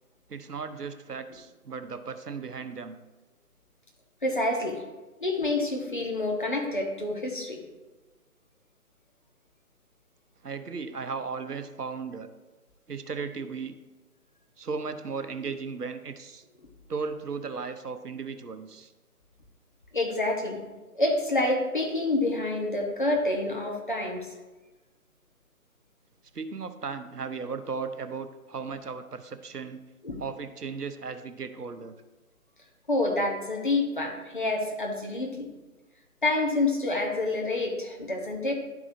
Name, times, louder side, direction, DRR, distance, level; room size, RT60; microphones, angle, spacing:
voice 1, 0.3-3.0 10.4-12.3 12.9-13.8 14.6-16.4 16.9-18.9 26.3-29.8 30.2-31.9, right 5 dB, 80° right, 10 dB, 0.8 m, -36 dB
voice 2, 4.2-4.8 5.2-7.6 19.9-20.6 20.9-24.3 30.0-30.2 32.9-35.5 36.2-38.5, left 2 dB, 35° left, 1 dB, 0.9 m, -27 dB
11.5 x 4.8 x 2.6 m, 1.2 s
figure-of-eight pair, 155°, 46 cm